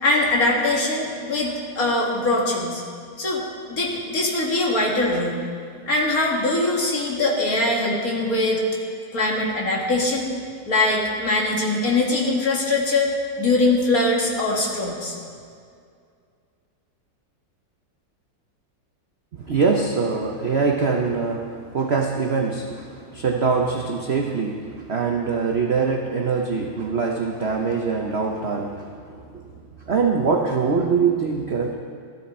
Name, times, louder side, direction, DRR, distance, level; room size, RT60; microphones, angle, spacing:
voice 1, 0.0-2.8 3.2-3.4 3.7-5.4 5.9-8.6 9.1-10.3 10.7-15.1, left 2 dB, 45° left, -2 dB, 2.2 m, -22 dB
voice 2, 19.3-29.4 29.9-31.8, right 5 dB, 75° right, 2 dB, 0.5 m, -23 dB
13.5 x 13.5 x 4.3 m, 2.3 s
omnidirectional pair, 2.2 m